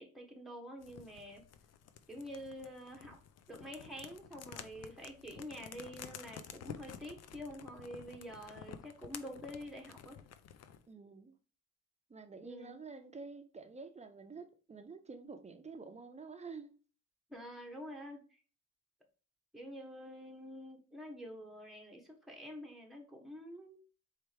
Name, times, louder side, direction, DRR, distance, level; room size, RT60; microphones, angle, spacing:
voice 1, 0.0-1.4 2.1-3.2 3.5-10.2 12.4-12.8 17.3-18.4 19.5-23.8, equal, ahead, 1.1 m, -47 dB
sound 1, 0.8-10.8, left 8 dB, 55° left, 0.5 m, -52 dB
voice 2, 10.9-11.4 12.1-16.8, right 4 dB, 20° right, 0.7 m, -49 dB
4.4 x 3.3 x 3.3 m
cardioid pair, 90°, 30 cm